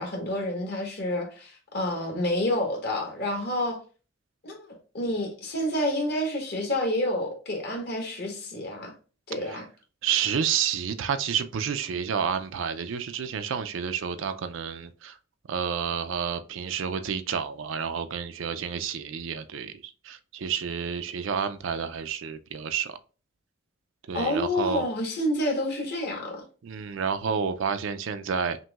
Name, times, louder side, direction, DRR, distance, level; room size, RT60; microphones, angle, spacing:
voice 1, 0.0-3.8 4.4-8.9 9.3-9.6 24.1-26.4, left 1 dB, 50° left, 1.3 m, -29 dB
voice 2, 10.0-15.2 15.5-23.0 24.1-24.8 26.6-28.6, right 7 dB, 65° right, 0.4 m, -30 dB
5.9 x 2.6 x 2.3 m
head